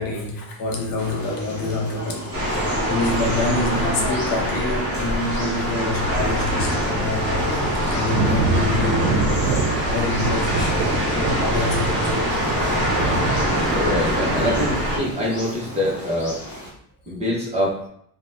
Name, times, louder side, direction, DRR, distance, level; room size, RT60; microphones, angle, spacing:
voice 1, 0.0-10.8 11.1-12.4 12.6-12.8, left 2 dB, 55° left, 0.7 m, -27 dB
sound 1, 1.0-16.7, equal, 25° left, 0.9 m, -36 dB
sound 2, 2.3-15.0, equal, 35° right, 1.3 m, -24 dB
Thunder, 8.1-15.1, right 4 dB, 80° right, 0.6 m, -27 dB
voice 2, 13.7-16.4 17.1-17.8, left 1 dB, 15° right, 0.7 m, -24 dB
2.7 x 2.1 x 3.3 m
cardioid pair, 175°, 41 cm